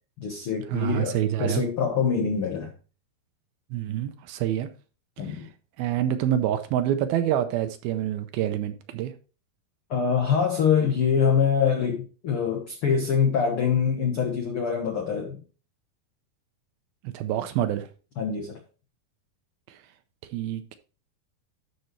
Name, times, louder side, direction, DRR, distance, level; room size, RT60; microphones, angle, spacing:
voice 1, 0.2-2.7 5.2-5.5 9.9-15.4 18.2-18.6, left 6 dB, 80° left, 1.2 m, -24 dB
voice 2, 0.7-1.7 3.7-4.7 5.2-5.4 5.8-9.1 17.0-17.9 19.7-19.8 20.3-20.8, right 11 dB, 80° right, 2.4 m, -27 dB
12.0 x 5.5 x 3.2 m
omnidirectional pair, 4.4 m